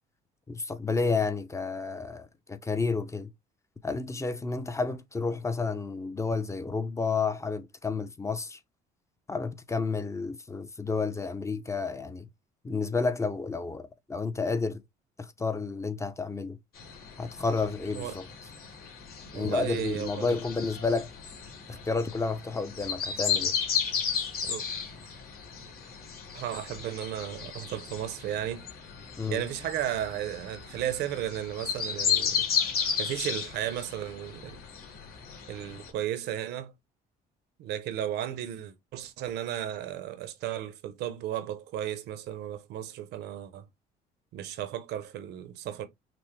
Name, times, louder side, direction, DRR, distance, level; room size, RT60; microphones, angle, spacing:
voice 1, 0.5-3.3 3.8-8.6 9.3-12.3 12.6-14.8 15.2-16.6 17.2-18.3 19.3-21.1 21.7-23.5 29.2-29.4, left 4 dB, 15° left, 0.5 m, -31 dB
sound 1, 16.8-35.9, left 7 dB, 65° left, 2.4 m, -34 dB
voice 2, 19.3-20.4 24.4-24.6 26.3-28.7 29.3-32.4 33.0-34.6 35.5-36.7 37.6-43.6 44.3-45.9, right 11 dB, 80° right, 0.7 m, -34 dB
6.0 x 2.0 x 3.2 m
cardioid pair, 110°, 17 cm